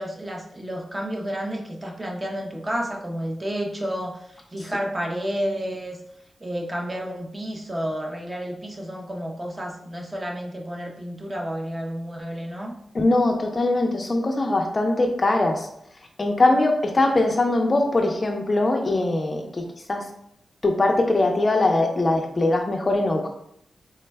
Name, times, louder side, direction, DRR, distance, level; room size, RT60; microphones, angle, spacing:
voice 1, 0.0-6.0 6.4-12.7, equal, 20° right, 0 dB, 0.5 m, -31 dB
voice 2, 12.9-15.7 16.2-20.1 20.6-23.3, left 2 dB, 30° left, 3 dB, 0.4 m, -21 dB
3.3 x 2.1 x 3.2 m, 0.72 s
wide cardioid pair, 130°, 0 cm